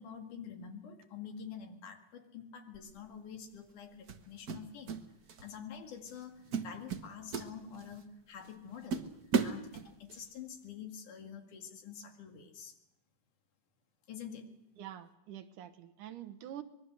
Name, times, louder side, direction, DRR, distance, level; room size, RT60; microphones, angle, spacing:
voice 1, 0.0-5.0 5.4-12.7 14.1-14.5, left 7 dB, 80° left, 4 dB, 3.6 m, -47 dB
sound 1, 2.7-3.0 4.1-5.0 5.3-5.6 6.1-6.2 6.5-8.0 8.4-8.5 8.9-10.2, right 5 dB, 60° right, 1.0 m, -35 dB
voice 2, 14.8-16.6, right 11 dB, 90° right, 10 dB, 2.7 m, -46 dB
25.0 x 21.5 x 6.5 m, 0.84 s
omnidirectional pair, 3.5 m